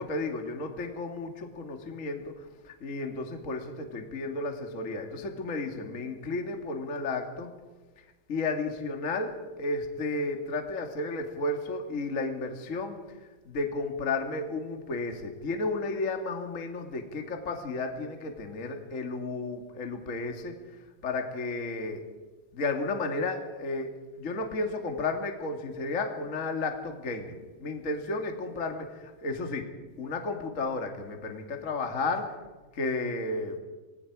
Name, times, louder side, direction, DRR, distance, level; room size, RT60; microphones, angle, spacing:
voice 1, 0.0-7.5 8.3-13.0 13.4-20.8 21.0-22.0 22.5-29.7 30.0-32.3 32.7-33.6, left 3 dB, 35° left, 4 dB, 1.3 m, -33 dB
27.0 x 20.0 x 4.8 m, 1.2 s
omnidirectional pair, 4.8 m